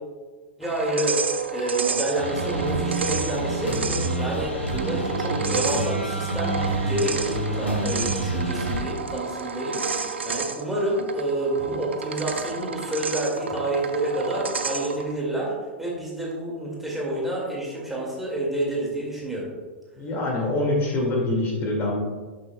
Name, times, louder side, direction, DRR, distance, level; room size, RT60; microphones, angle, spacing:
voice 1, 0.6-15.5 15.8-19.5, right 1 dB, 5° right, -4 dB, 1.9 m, -28 dB
sound 1, 0.6-15.1, right 5 dB, 75° right, 0.6 m, -31 dB
sound 2, 2.2-8.8, right 2 dB, 85° left, 1.7 m, -28 dB
voice 2, 20.0-22.0, left 2 dB, 30° left, -1 dB, 1.9 m, -25 dB
11.5 x 6.5 x 2.2 m, 1.4 s
figure-of-eight pair, 100°, 6 cm